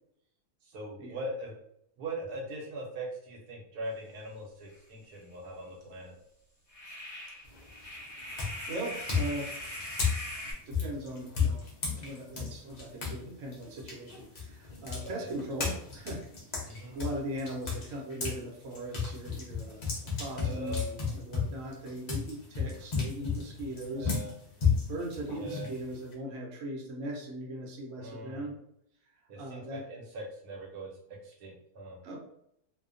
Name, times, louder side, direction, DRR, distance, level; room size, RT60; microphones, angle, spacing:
voice 1, 0.6-1.6 2.0-6.2 15.0-15.3 16.6-17.0 20.3-21.0 23.9-24.3 25.4-25.7 28.0-28.5 29.3-32.0, right 1 dB, 80° right, -1 dB, 1.2 m, -41 dB
sound 1, 4.7-4.8 5.1-5.2 6.7-10.5, left 1 dB, 25° left, 1.2 m, -41 dB
sound 2, 7.4-7.8 8.3-13.2 13.5-18.4 18.7-26.1, left 5 dB, 55° left, 0.5 m, -33 dB
voice 2, 8.7-9.8 10.7-11.6 11.9-16.2 16.9-24.1 24.9-28.6 29.4-29.9 32.0-32.2, right 1 dB, 65° right, -1 dB, 0.9 m, -39 dB
2.7 x 2.1 x 2.4 m, 0.72 s
omnidirectional pair, 1.6 m